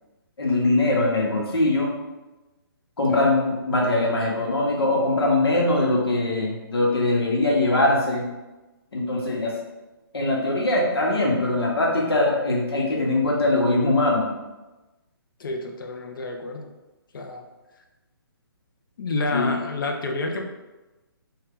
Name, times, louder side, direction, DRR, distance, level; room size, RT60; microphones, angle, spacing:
voice 1, 0.4-1.9 3.0-8.3 8.9-9.5 10.1-14.3 19.3-19.5, left 2 dB, 85° left, -2 dB, 1.0 m, -22 dB
voice 2, 15.4-16.7 17.1-17.5 19.0-20.4, left 2 dB, 60° left, 3 dB, 0.5 m, -29 dB
2.7 x 2.2 x 3.5 m, 1.1 s
hypercardioid pair, 150°, 13 cm